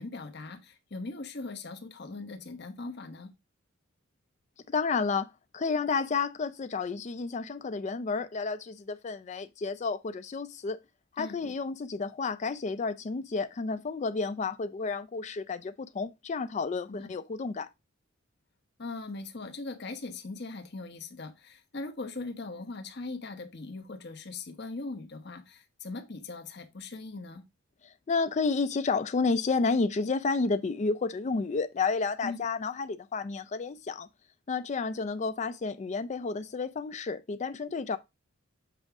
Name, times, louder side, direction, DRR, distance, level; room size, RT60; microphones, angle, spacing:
voice 1, 0.0-3.3 11.2-11.4 16.9-17.1 18.8-27.4 32.2-32.4, left 3 dB, 55° left, 1.1 m, -40 dB
voice 2, 4.7-10.8 11.1-17.7 27.8-34.1 34.5-38.0, left 4 dB, 35° left, 0.4 m, -31 dB
7.6 x 4.8 x 3.5 m
head